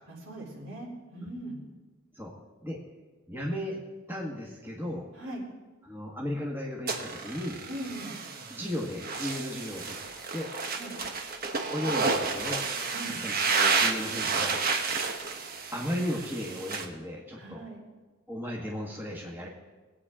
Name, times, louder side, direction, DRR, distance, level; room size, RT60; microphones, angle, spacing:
voice 1, 0.1-1.6 5.2-5.4 7.7-8.1 10.7-10.9 12.9-13.1 17.3-17.8, right 1 dB, 65° right, -3 dB, 3.5 m, -40 dB
voice 2, 3.3-3.8 4.1-5.1 5.8-7.6 8.5-10.0 10.3-10.5 11.7-12.6 13.0-13.3 13.7-14.6 15.7-17.6 18.3-19.5, equal, 10° right, -3 dB, 1.7 m, -35 dB
sound 1, 6.9-16.9, right 4 dB, 45° right, 1.2 m, -31 dB
22.0 x 8.6 x 3.7 m, 1.3 s
head